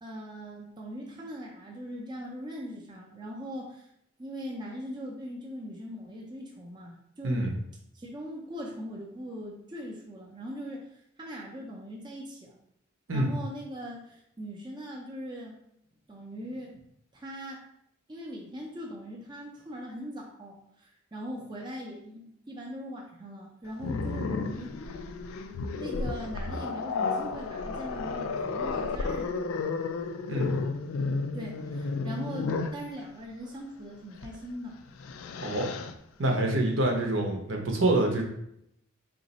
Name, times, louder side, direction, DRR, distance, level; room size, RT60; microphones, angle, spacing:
voice 1, 0.0-3.9 4.2-7.5 7.9-12.6 13.1-15.5 16.1-16.7 17.1-17.7 18.1-24.8 25.8-29.8 31.3-34.8, equal, 20° right, -2 dB, 0.5 m, -40 dB
Growling, 23.8-32.8 34.2-34.4 34.8-35.9, left 4 dB, 80° left, 0.4 m, -32 dB
voice 2, 35.4-35.7 36.2-38.2, right 1 dB, 65° right, 1 dB, 0.8 m, -26 dB
3.9 x 2.6 x 4.1 m, 0.75 s
head